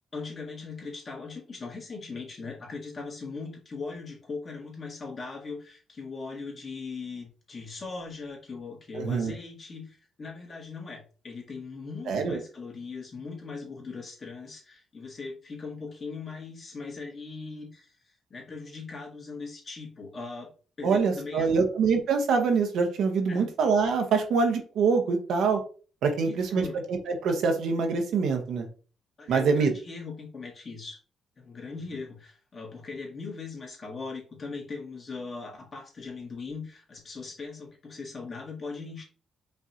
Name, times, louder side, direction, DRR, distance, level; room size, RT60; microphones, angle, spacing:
voice 1, 0.1-20.5 20.8-21.6 23.3-23.5 26.1-26.8 29.2-31.0 31.4-39.0, left 4 dB, 40° left, -1 dB, 1.6 m, -39 dB
voice 2, 8.9-9.3 12.1-12.4 20.8-25.6 26.0-26.6 26.9-28.7 29.3-29.7, right 5 dB, 75° right, 4 dB, 0.8 m, -25 dB
5.3 x 2.5 x 2.8 m, 0.38 s
cardioid pair, 85°, 0 cm